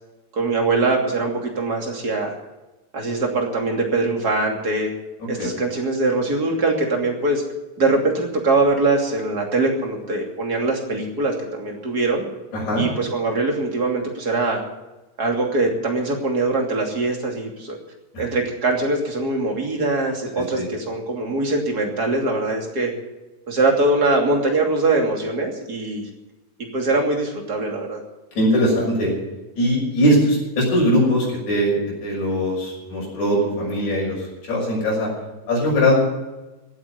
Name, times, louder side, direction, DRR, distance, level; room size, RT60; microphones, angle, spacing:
voice 1, 0.3-2.3 2.9-4.9 5.3-7.4 7.8-12.2 12.8-14.6 15.2-17.8 18.2-22.9 23.5-26.0 26.7-28.0, right 2 dB, 35° right, 2 dB, 3.1 m, -22 dB
voice 2, 12.5-12.8 18.1-18.2 20.6-20.7 28.4-29.1 29.6-34.2 34.5-35.1 35.5-36.0, equal, 85° left, -4 dB, 7.7 m, -20 dB
16.5 x 8.5 x 10.0 m, 1.1 s
omnidirectional pair, 3.3 m